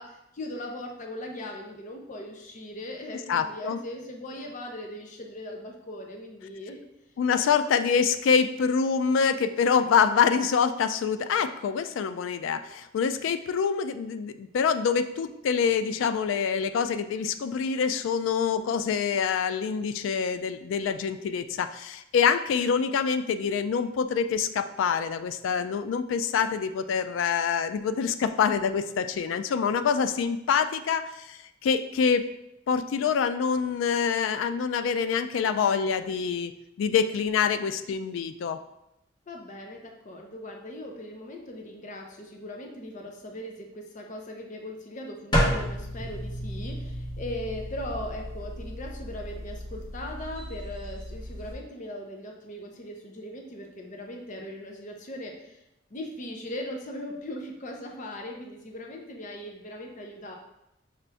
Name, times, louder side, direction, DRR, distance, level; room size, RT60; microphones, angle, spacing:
voice 1, 0.0-6.8 7.4-7.5 39.3-55.6 55.9-60.4, left 1 dB, 40° left, 2 dB, 0.6 m, -39 dB
voice 2, 3.3-3.8 7.2-32.3 32.7-36.5 36.8-38.6, left 6 dB, 85° left, 11 dB, 0.3 m, -26 dB
sound 1, 45.3-51.5, equal, 25° left, 1.1 m, -32 dB
5.6 x 2.5 x 3.4 m, 0.85 s
head